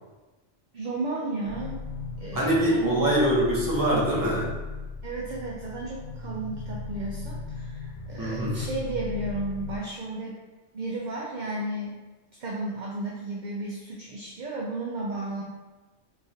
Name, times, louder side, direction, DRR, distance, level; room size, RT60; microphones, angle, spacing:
voice 1, 0.7-1.8 2.2-3.0 5.0-10.4 10.7-11.9 12.4-15.4, right 2 dB, 55° right, -3 dB, 0.5 m, -33 dB
sound 1, 1.4-9.8, left 3 dB, 85° left, 0.9 m, -37 dB
voice 2, 2.3-4.5 8.2-8.7, right 1 dB, 20° right, -5 dB, 0.7 m, -24 dB
3.6 x 3.1 x 2.7 m, 1.2 s
omnidirectional pair, 1.2 m